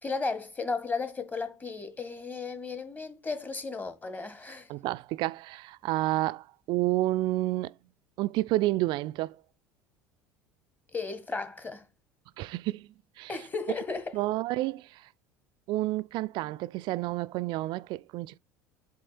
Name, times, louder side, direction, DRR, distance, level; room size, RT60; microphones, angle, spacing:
voice 1, 0.0-4.7 10.9-11.9 13.3-14.2, left 4 dB, 20° left, 1.3 m, -34 dB
voice 2, 4.7-7.7 8.2-9.4 12.4-12.9 13.2-13.3 14.1-15.0 15.7-18.4, right 17 dB, 55° right, 0.3 m, -30 dB
7.5 x 3.2 x 6.1 m
hypercardioid pair, 70°, 9 cm